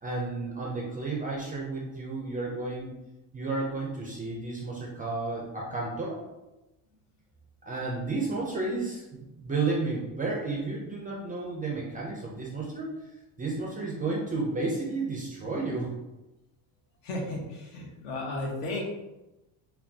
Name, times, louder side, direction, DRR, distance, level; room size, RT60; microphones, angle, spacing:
voice 1, 0.0-2.9 3.3-6.2 7.7-12.9 13.4-15.9, right 3 dB, 20° right, -2 dB, 0.4 m, -32 dB
voice 2, 17.0-18.8, left 2 dB, 75° left, -1 dB, 1.3 m, -34 dB
5.7 x 2.3 x 2.7 m, 1.0 s
cardioid pair, 140°, 49 cm